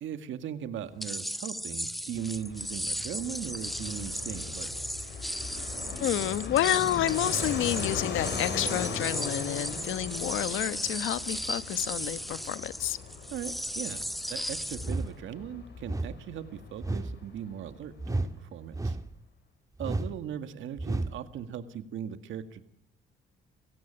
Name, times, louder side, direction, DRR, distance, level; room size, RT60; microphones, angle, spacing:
voice 1, 0.0-4.7 13.3-14.0 14.3-19.0 19.8-22.6, right 9 dB, 80° right, 10 dB, 2.0 m, -38 dB
Shuffling Glass Around, 1.0-15.0, equal, ahead, 1.1 m, -36 dB
Fixed-wing aircraft airplane, 2.1-18.3, left 5 dB, 60° left, 6.6 m, -39 dB
voice 2, 6.0-13.0, left 12 dB, 80° left, 14 dB, 1.2 m, -29 dB
sound 1, 14.8-15.2 15.8-16.2 16.8-17.2 18.0-18.4 18.7-19.2 19.8-20.2 20.8-21.2, right 2 dB, 15° right, 1.8 m, -32 dB
29.0 x 17.0 x 8.9 m, 0.72 s
cardioid pair, 90°, 20 cm